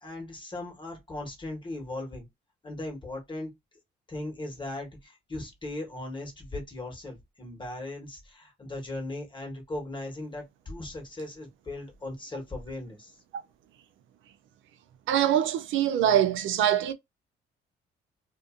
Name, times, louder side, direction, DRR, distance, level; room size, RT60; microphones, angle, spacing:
voice 1, 0.0-2.3 2.6-3.5 4.1-13.2, left 2 dB, 25° left, 1.3 m, -38 dB
voice 2, 15.1-16.9, right 10 dB, 80° right, 0.4 m, -24 dB
2.6 x 2.5 x 2.5 m
cardioid pair, 90°, 20 cm